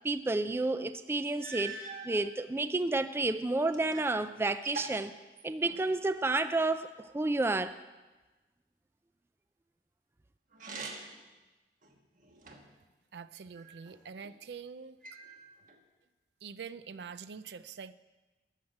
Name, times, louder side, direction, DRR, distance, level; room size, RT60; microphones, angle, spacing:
voice 1, 0.0-1.8 2.0-5.1 5.4-7.8, right 2 dB, 15° right, 12 dB, 0.3 m, -30 dB
sound 1, 0.8-0.9 1.4-2.2 2.9-4.2 4.4-6.0 10.5-11.3 11.8-12.8 13.5-14.3 15.0-15.8, right 3 dB, 50° right, 1.3 m, -45 dB
voice 2, 13.1-15.0 16.4-17.9, right 6 dB, 75° right, 14 dB, 0.5 m, -45 dB
13.0 x 6.4 x 8.7 m, 1.2 s
head